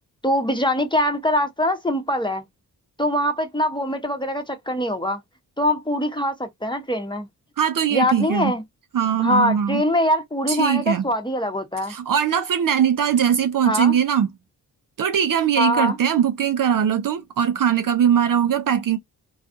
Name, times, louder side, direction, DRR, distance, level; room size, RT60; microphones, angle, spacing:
voice 1, 0.2-2.4 3.0-5.2 5.6-7.3 7.9-8.6 9.2-11.9 13.6-14.0 15.6-16.0, left 1 dB, 10° left, 0.9 m, -23 dB
voice 2, 7.6-8.5 8.9-9.8 10.5-11.0 11.9-14.3 15.0-19.0, right 8 dB, 55° right, 0.5 m, -20 dB
2.4 x 2.4 x 2.5 m
cardioid pair, 50°, 40 cm